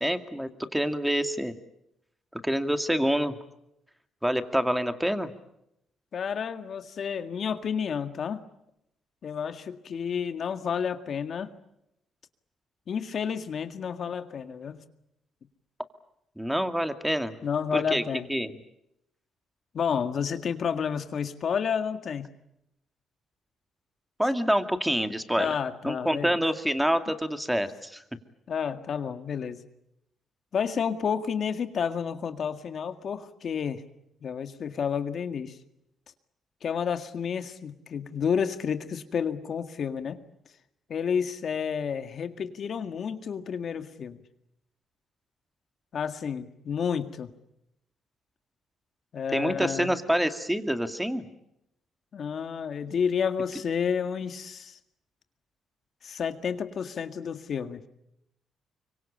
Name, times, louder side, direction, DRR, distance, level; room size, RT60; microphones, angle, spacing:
voice 1, 0.0-1.6 2.3-3.4 4.2-5.3 16.4-17.4 17.7-18.0 18.3-18.5 24.2-25.5 25.8-28.0 49.3-51.2, equal, 5° right, 8 dB, 2.2 m, -27 dB
voice 2, 6.1-8.4 9.2-11.5 12.9-14.8 17.4-18.3 19.7-22.3 25.4-26.3 28.5-29.6 30.5-33.8 34.2-35.6 36.6-40.2 40.9-44.2 45.9-47.3 49.1-49.9 52.1-54.8 56.0-57.8, left 7 dB, 55° left, 9 dB, 1.9 m, -30 dB
25.0 x 24.0 x 8.7 m, 0.81 s
cardioid pair, 90°, 0 cm